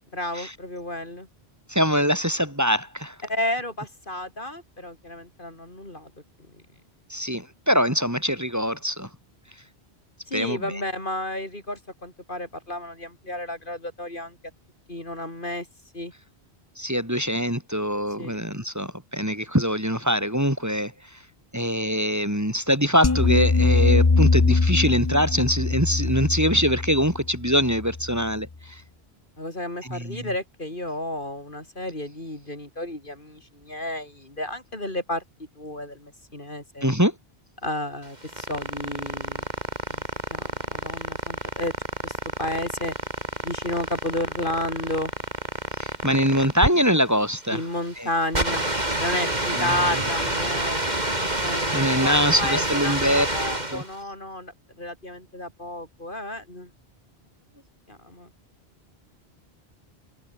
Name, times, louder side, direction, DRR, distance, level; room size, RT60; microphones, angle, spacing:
voice 1, 0.1-1.3 3.3-6.1 6.5-6.6 10.3-14.4 14.9-15.7 15.9-16.1 18.2-18.4 29.4-35.2 35.6-36.9 37.6-39.5 39.9-41.7 42.0-43.0 43.4-45.1 47.5-48.7 49.0-50.8 51.4-56.7 57.9-58.3, left 1 dB, 50° left, 5.5 m, -32 dB
voice 2, 1.7-3.2 7.1-9.1 10.3-10.8 16.8-21.2 21.5-28.8 29.8-30.3 36.8-37.2 45.8-47.6 48.0-48.1 49.6-50.0 51.3-53.3 53.7-53.8, equal, 15° right, 4.9 m, -24 dB
sound 1, 23.0-28.3, left 3 dB, 25° left, 0.8 m, -22 dB
sound 2, 38.0-53.9, right 1 dB, 40° right, 5.2 m, -28 dB
omnidirectional pair, 1.1 m